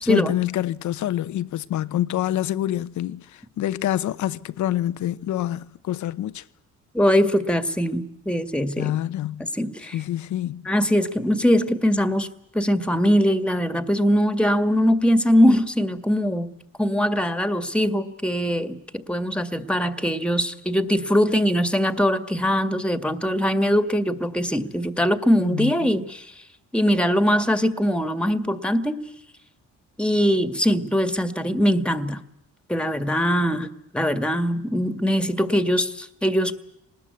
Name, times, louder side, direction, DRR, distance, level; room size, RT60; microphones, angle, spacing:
voice 1, 0.0-6.4 8.8-9.5 9.9-10.6 25.4-25.9, left 13 dB, 75° left, 1.0 m, -26 dB
voice 2, 6.9-9.0 9.5-10.0 10.7-12.3 12.5-16.5 16.8-26.3 26.7-29.1 30.0-32.2 32.7-36.5, equal, 5° left, 1.9 m, -22 dB
26.0 x 20.0 x 8.3 m
cardioid pair, 90°, 30 cm